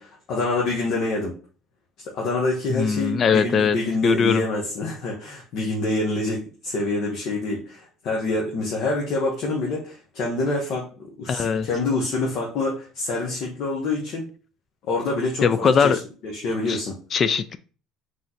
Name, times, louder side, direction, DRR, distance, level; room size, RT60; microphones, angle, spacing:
voice 1, 0.0-1.3 2.0-10.9 11.2-14.3 14.9-17.0, left 2 dB, 65° left, -2 dB, 1.2 m, -26 dB
voice 2, 2.7-3.8 4.0-4.4 11.3-11.7 15.4-16.0 16.7-16.8 17.1-17.6, left 6 dB, 45° left, 13 dB, 0.4 m, -20 dB
3.7 x 3.3 x 4.0 m, 0.39 s
supercardioid pair, 80°, 0 cm